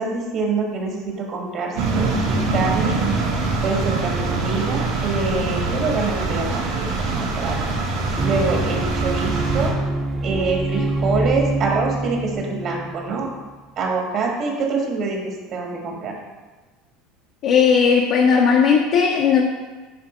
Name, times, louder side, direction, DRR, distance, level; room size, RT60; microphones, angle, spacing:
voice 1, 0.0-3.0 3.6-7.8 8.2-9.8 10.2-13.3 13.8-16.2, right 3 dB, 50° right, 0 dB, 1.7 m, -25 dB
sound 1, 1.8-9.7, right 3 dB, 85° right, 1.7 m, -24 dB
sound 2, 8.2-13.5, right 2 dB, 15° right, 0.8 m, -26 dB
voice 2, 17.4-19.4, left 6 dB, 60° left, -1 dB, 0.9 m, -16 dB
9.5 x 3.5 x 5.1 m, 1.3 s
supercardioid pair, 115°, 0 cm